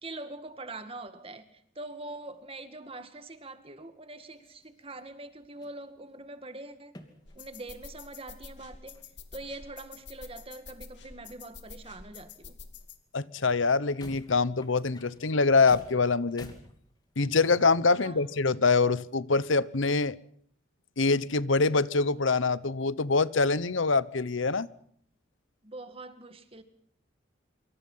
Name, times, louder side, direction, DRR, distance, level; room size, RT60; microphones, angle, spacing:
voice 1, 0.0-7.0 7.4-9.0 9.3-12.6 18.0-18.3 25.6-26.6, right 2 dB, 30° right, 2.1 m, -43 dB
sound 1, 4.3-5.1 5.4-6.2 6.9-7.5 7.8-8.1 8.6-8.7 8.9-10.4 11.2-12.3 12.8-12.9 13.3-13.4 13.6-17.3 18.0-18.1, left 1 dB, 20° left, 2.6 m, -52 dB
sound 2, 7.3-13.0, left 5 dB, 60° left, 2.4 m, -48 dB
voice 2, 13.1-16.5 17.2-20.2 21.0-24.7, left 4 dB, 75° left, 1.0 m, -25 dB
26.0 x 25.0 x 5.7 m
head